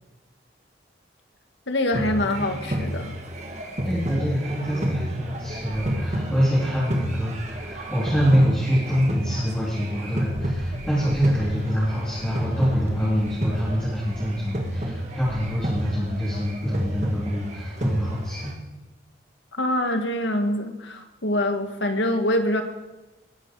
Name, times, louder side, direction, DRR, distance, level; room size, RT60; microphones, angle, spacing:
voice 1, 1.7-3.2 19.5-22.6, left 1 dB, 80° left, 6 dB, 1.8 m, -25 dB
sound 1, 1.9-18.5, equal, 40° right, 1.8 m, -30 dB
voice 2, 3.8-18.5, equal, 5° left, -9 dB, 3.8 m, -25 dB
20.0 x 10.5 x 4.9 m, 1.1 s
head